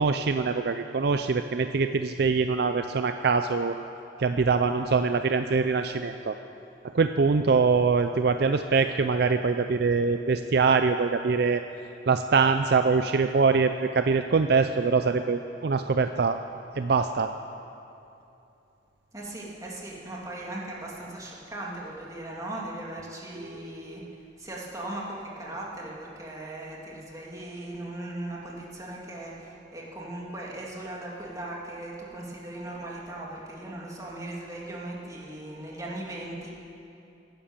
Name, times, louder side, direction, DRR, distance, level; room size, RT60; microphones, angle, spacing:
voice 1, 0.0-3.7 4.2-6.4 6.9-11.6 12.1-16.4 16.8-17.3 23.4-24.1, right 4 dB, 55° right, 8 dB, 0.4 m, -24 dB
voice 2, 19.1-24.0 24.4-36.5, right 1 dB, 20° right, -4 dB, 2.5 m, -38 dB
17.0 x 10.5 x 7.2 m, 2.8 s
head